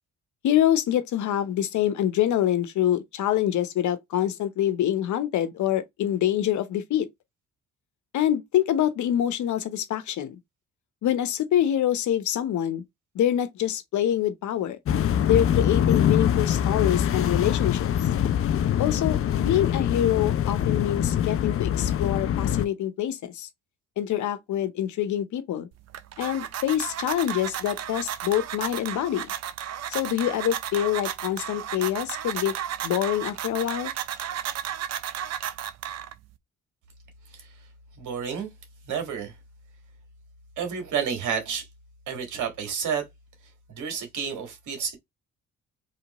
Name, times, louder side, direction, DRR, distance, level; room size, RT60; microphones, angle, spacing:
voice 1, 0.4-7.1 8.1-10.4 11.0-12.8 13.1-14.8 15.2-17.9 18.8-23.5 24.0-25.7 26.2-29.3 29.9-32.5 32.8-33.9, left 11 dB, 75° left, 0.9 m, -25 dB
sound 1, 14.9-22.6, left 9 dB, 50° left, 0.5 m, -24 dB
sound 2, 25.7-36.4, right 10 dB, 60° right, 0.6 m, -34 dB
voice 2, 38.0-38.5 38.9-39.3 40.6-41.7 42.1-43.0 43.7-45.0, right 7 dB, 75° right, 1.7 m, -30 dB
3.3 x 2.9 x 4.0 m
cardioid pair, 90°, 30 cm